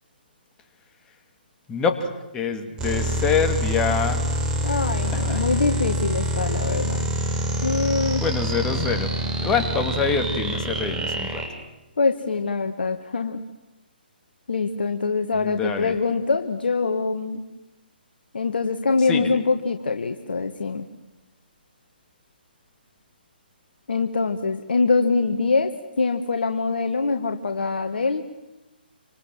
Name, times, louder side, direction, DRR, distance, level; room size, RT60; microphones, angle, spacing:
voice 1, 1.7-4.2 5.1-5.4 8.1-9.1 9.4-11.4 15.3-16.0 19.0-19.4, left 5 dB, 15° left, 6 dB, 2.4 m, -26 dB
sound 1, 2.8-11.5, right 1 dB, 15° right, 4.2 m, -26 dB
voice 2, 4.6-7.1 7.6-8.2 12.0-13.4 14.5-17.4 18.3-20.9 23.9-28.2, left 4 dB, 70° left, 6 dB, 1.7 m, -24 dB
27.5 x 26.0 x 7.6 m, 1.0 s
figure-of-eight pair, 140°, 6 cm